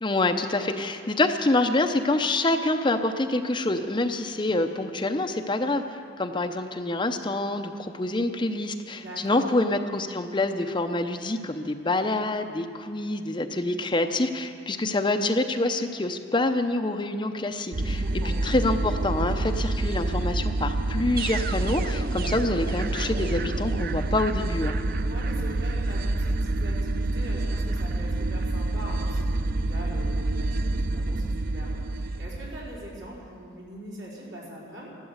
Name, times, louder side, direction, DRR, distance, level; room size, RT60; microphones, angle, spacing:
voice 1, 0.0-5.8 6.2-24.8, left 2 dB, 25° left, 6 dB, 0.6 m, -26 dB
voice 2, 8.9-9.4 17.9-18.3 25.0-34.9, equal, 65° right, -7 dB, 4.8 m, -42 dB
sound 1, 17.7-33.1, right 2 dB, 45° right, 0.5 m, -27 dB
13.5 x 12.0 x 7.9 m, 2.3 s
head